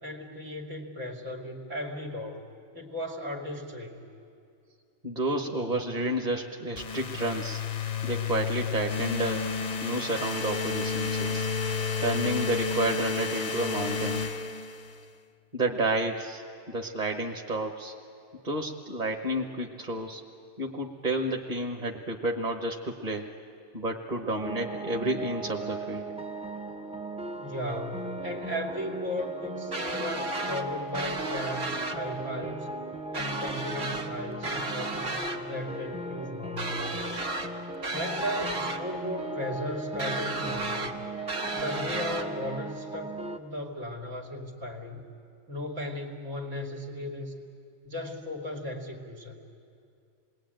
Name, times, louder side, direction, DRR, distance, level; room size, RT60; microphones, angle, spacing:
voice 1, 0.0-2.4 2.7-4.0 27.2-32.7 33.1-37.0 37.9-41.0 41.5-45.0 45.5-47.4 47.8-49.3, left 1 dB, 90° right, 0 dB, 3.0 m, -36 dB
voice 2, 5.0-7.6 8.0-9.5 9.8-11.5 12.0-14.2 15.5-17.9 18.4-20.2 20.6-23.3 23.7-26.1, right 1 dB, 35° right, 2 dB, 1.4 m, -30 dB
sound 1, 6.8-15.1, left 5 dB, 40° left, 0.7 m, -31 dB
sound 2, 24.4-43.4, right 2 dB, 5° right, 0.5 m, -37 dB
sound 3, 29.7-30.6 30.9-32.0 33.1-34.1 34.4-35.4 36.6-37.5 37.8-38.8 40.0-40.9 41.3-42.3, right 2 dB, 60° right, 2.1 m, -33 dB
28.0 x 20.5 x 9.1 m, 2.5 s
omnidirectional pair, 1.2 m